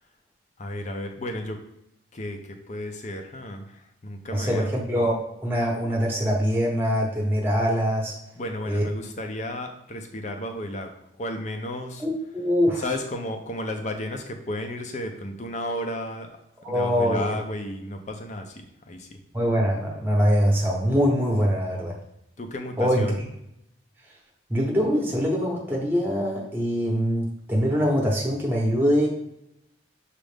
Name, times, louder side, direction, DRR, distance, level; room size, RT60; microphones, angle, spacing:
voice 1, 0.6-1.6 2.1-4.7 8.4-10.9 11.2-12.0 12.8-16.3 16.7-18.6 18.9-19.2 22.4-23.2, left 1 dB, 35° left, 5 dB, 0.5 m, -33 dB
voice 2, 4.3-8.1 8.7-8.8 12.0-12.9 16.6-17.4 19.3-21.9 22.8-23.1 24.5-29.1, equal, 10° right, -2 dB, 0.9 m, -23 dB
6.2 x 2.5 x 3.4 m, 0.80 s
head